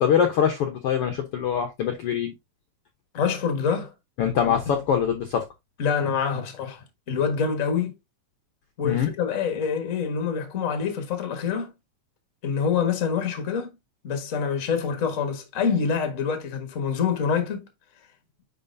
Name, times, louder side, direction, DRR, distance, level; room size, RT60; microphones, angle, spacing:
voice 1, 0.0-2.3 4.2-5.5 8.8-9.1, left 8 dB, 80° left, 1.3 m, -23 dB
voice 2, 3.1-3.9 4.5-4.6 5.8-8.0 8.8-11.7 12.4-13.7 14.0-17.7, left 6 dB, 45° left, 1.0 m, -26 dB
9.6 x 4.4 x 2.6 m
omnidirectional pair, 3.9 m